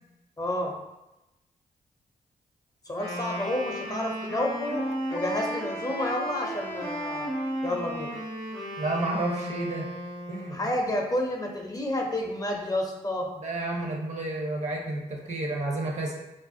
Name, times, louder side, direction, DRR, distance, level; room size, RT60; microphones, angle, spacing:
voice 1, 0.4-0.8 2.9-4.8 5.1-7.3 7.6-8.1 10.5-13.3, left 1 dB, 25° left, 1 dB, 0.5 m, -30 dB
Wind instrument woodwind instrument, 2.9-10.6, equal, 80° right, 1.1 m, -34 dB
voice 2, 8.8-9.9 10.3-10.7 13.4-16.2, right 2 dB, 50° right, -1 dB, 0.6 m, -31 dB
2.4 x 2.1 x 2.5 m, 0.97 s
supercardioid pair, 50°, 15 cm